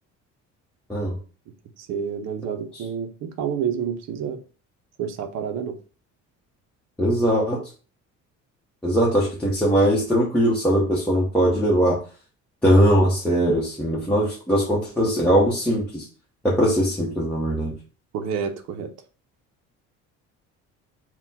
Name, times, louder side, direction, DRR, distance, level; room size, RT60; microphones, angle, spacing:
voice 1, 1.8-4.4 5.0-5.8 18.1-18.9, right 7 dB, 65° right, 7 dB, 0.6 m, -29 dB
voice 2, 7.0-7.6 8.8-12.0 12.6-16.1 16.4-17.7, equal, 5° left, -7 dB, 0.8 m, -20 dB
4.1 x 2.2 x 4.1 m, 0.37 s
cardioid pair, 140°, 29 cm